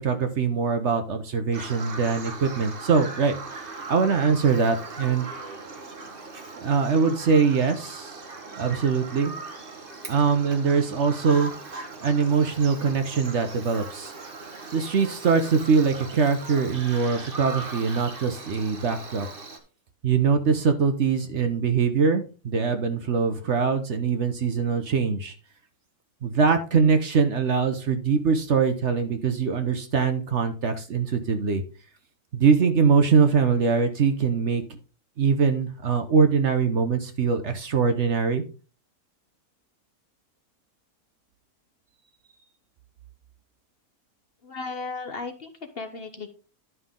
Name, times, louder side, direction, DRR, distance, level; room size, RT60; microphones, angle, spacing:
voice 1, 0.0-3.3 3.9-5.3 6.6-8.2 8.6-9.3 10.1-11.5 12.0-14.1 14.7-19.3 20.0-25.3 26.2-31.6 32.3-34.6 35.2-38.4, right 5 dB, 55° right, 8 dB, 1.1 m, -22 dB
Bird vocalization bird call bird song, 1.5-19.6, right 3 dB, 40° right, 1.4 m, -39 dB
voice 2, 44.4-46.3, left 3 dB, 45° left, 7 dB, 1.0 m, -35 dB
11.0 x 5.6 x 3.7 m, 0.35 s
omnidirectional pair, 1.6 m